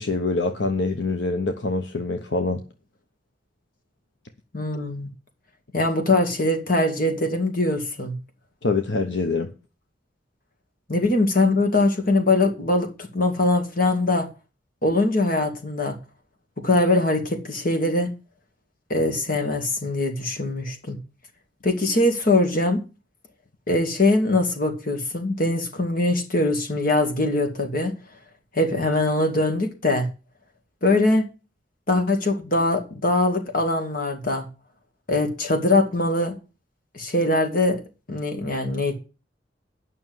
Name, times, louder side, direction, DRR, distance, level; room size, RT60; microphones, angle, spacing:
voice 1, 0.0-2.6 8.6-9.5, left 3 dB, 75° left, 0.9 m, -25 dB
voice 2, 4.5-5.1 5.7-8.2 10.9-14.3 14.8-16.0 16.6-18.1 18.9-21.0 21.6-22.8 23.7-27.9 28.5-30.1 30.8-31.3 31.9-34.5 35.1-36.4 36.9-37.8 38.1-39.0, left 2 dB, 55° left, 2.1 m, -22 dB
9.4 x 6.1 x 7.9 m
head